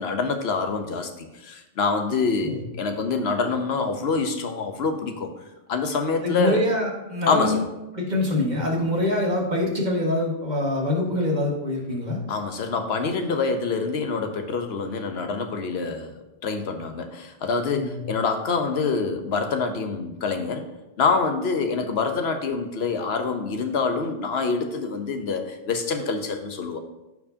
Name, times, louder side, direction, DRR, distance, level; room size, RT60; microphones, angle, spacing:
voice 1, 0.0-5.3 5.7-6.7 7.3-7.7 12.3-16.2 16.4-20.7 21.0-26.8, left 4 dB, 75° left, 6 dB, 1.1 m, -26 dB
voice 2, 6.2-7.6 7.9-12.2 17.7-18.0, left 1 dB, 45° right, -2 dB, 1.8 m, -25 dB
14.0 x 4.7 x 2.8 m, 0.97 s
omnidirectional pair, 1.1 m